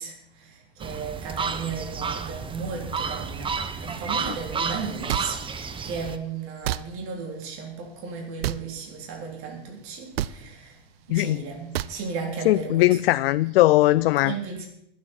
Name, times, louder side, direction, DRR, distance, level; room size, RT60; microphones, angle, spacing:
voice 1, 0.0-13.0 14.2-14.7, right 5 dB, 45° right, 3.4 m, -35 dB
sound 1, 0.8-6.2, right 5 dB, 15° right, 0.9 m, -31 dB
sound 2, 5.1-5.3 6.6-6.8 8.4-8.6 10.2-10.3 11.7-12.0, right 13 dB, 75° right, 0.6 m, -27 dB
voice 2, 11.1-11.4 12.5-14.3, left 17 dB, 70° left, 0.4 m, -19 dB
21.0 x 8.6 x 4.4 m
hypercardioid pair, 115°, 30 cm